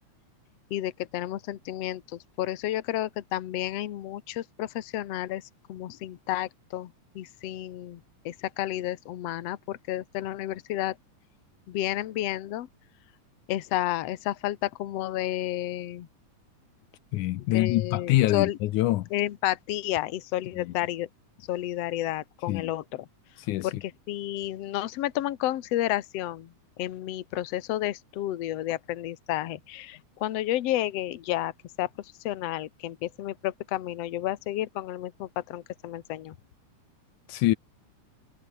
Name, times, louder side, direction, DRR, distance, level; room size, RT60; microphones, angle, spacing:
voice 1, 0.7-5.4 5.7-8.0 8.3-11.0 11.7-12.7 13.5-16.1 17.5-18.6 19.1-21.1 21.5-23.1 23.6-31.5 31.8-36.4, left 14 dB, 60° left, 2.1 m, -31 dB
voice 2, 17.1-19.1 20.5-20.7 22.5-22.7 23.4-23.7 37.3-37.6, left 16 dB, 80° left, 2.3 m, -25 dB
omnidirectional pair, 3.6 m